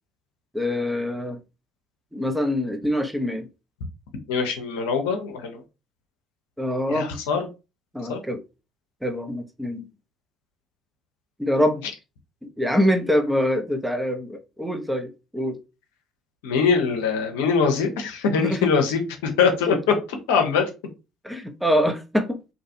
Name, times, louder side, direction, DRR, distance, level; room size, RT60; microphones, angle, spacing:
voice 1, 0.5-1.4 2.1-3.5 6.6-7.1 7.9-8.4 9.0-9.9 11.4-11.8 12.6-15.6 18.4-18.7 21.2-22.4, equal, 5° right, 0.6 m, -24 dB
voice 2, 4.3-5.6 6.9-7.5 8.1-8.2 16.4-20.7, left 5 dB, 70° left, 0.6 m, -23 dB
2.6 x 2.4 x 2.7 m
figure-of-eight pair, 55°, 0 cm